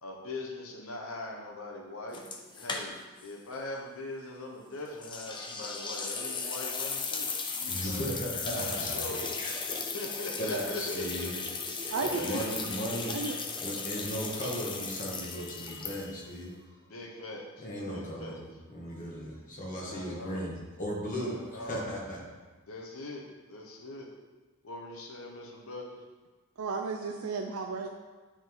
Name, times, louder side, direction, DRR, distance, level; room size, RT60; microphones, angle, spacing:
voice 1, 0.0-2.2 2.6-7.3 7.6-8.0 8.5-9.3 9.9-11.3 11.9-12.5 16.9-18.4 19.8-20.4 21.2-21.9 22.7-24.1 24.6-26.0, left 2 dB, 65° left, 0 dB, 1.0 m, -41 dB
sound 1, 2.1-3.3 3.5-3.6 5.0-16.3, left 4 dB, 20° left, 0.6 m, -36 dB
voice 2, 7.7-9.1 9.4-9.5 10.4-11.4 12.0-16.8 17.6-22.2, equal, 35° left, -4 dB, 1.7 m, -36 dB
voice 3, 26.6-27.9, right 4 dB, 70° right, 3 dB, 0.5 m, -33 dB
10.0 x 3.7 x 3.9 m, 1.3 s
head